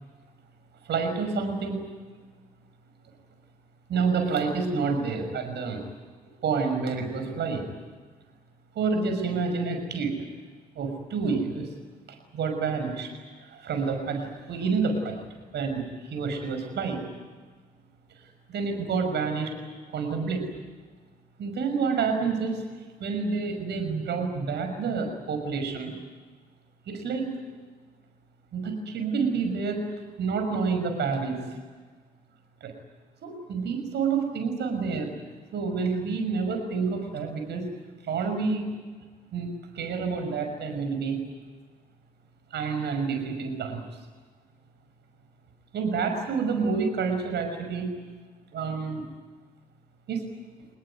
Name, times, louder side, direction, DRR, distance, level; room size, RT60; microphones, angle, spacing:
voice 1, 0.9-1.9 3.9-5.8 6.4-7.7 8.7-10.1 10.8-11.7 12.3-13.1 13.5-15.1 15.5-17.0 18.5-19.5 19.9-20.4 21.4-22.6 23.0-25.9 26.9-27.3 28.5-29.8 30.2-31.6 32.6-32.7 33.2-35.1 35.5-37.7 38.0-38.7 39.3-41.2 42.5-44.0 45.7-47.9 48.5-49.0 50.1-50.2, right 5 dB, 60° right, 5 dB, 6.0 m, -28 dB
26.0 x 20.5 x 9.4 m, 1.5 s
hypercardioid pair, 45°, 19 cm